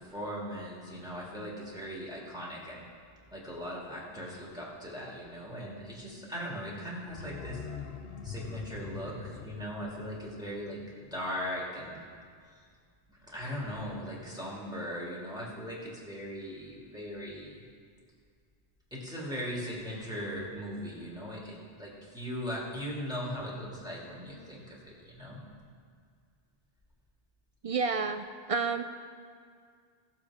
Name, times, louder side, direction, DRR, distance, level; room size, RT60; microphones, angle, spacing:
voice 1, 0.0-2.8 3.3-7.6 8.2-12.1 13.3-17.6 18.9-25.4, equal, 5° right, -6 dB, 2.4 m, -39 dB
sound 1, 7.1-11.8 12.1-12.2, left 5 dB, 70° left, 1.0 m, -44 dB
voice 2, 27.6-28.8, right 5 dB, 55° right, 8 dB, 0.4 m, -30 dB
16.0 x 7.2 x 4.9 m, 2.1 s
omnidirectional pair, 1.0 m